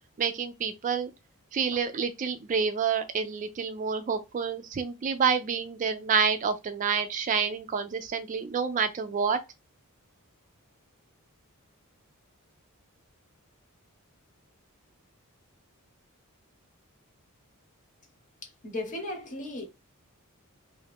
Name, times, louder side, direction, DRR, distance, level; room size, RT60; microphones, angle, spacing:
voice 1, 0.2-1.1 1.5-9.4, right 6 dB, 35° right, 0.3 m, -28 dB
voice 2, 18.4-19.6, left 2 dB, 35° left, 0.9 m, -36 dB
2.6 x 2.4 x 3.4 m
head